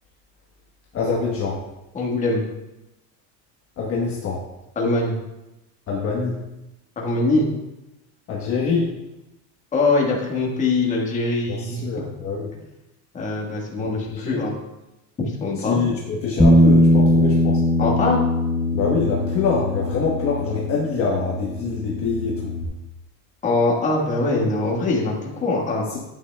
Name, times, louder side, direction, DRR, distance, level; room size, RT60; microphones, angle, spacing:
voice 1, 0.9-1.6 3.8-4.4 5.9-6.4 8.3-8.9 11.5-12.4 13.8-14.4 15.6-17.6 18.7-22.5, left 5 dB, 35° left, -3 dB, 1.2 m, -25 dB
voice 2, 1.9-2.4 4.7-5.2 7.0-7.5 9.7-11.8 12.5-12.6 13.1-14.5 15.2-15.8 17.8-18.2 23.4-26.0, left 3 dB, 20° left, -2 dB, 1.5 m, -22 dB
Bass guitar, 16.4-22.6, left 1 dB, ahead, 0.5 m, -20 dB
11.0 x 8.9 x 2.3 m, 0.94 s
cardioid pair, 160°, 40 cm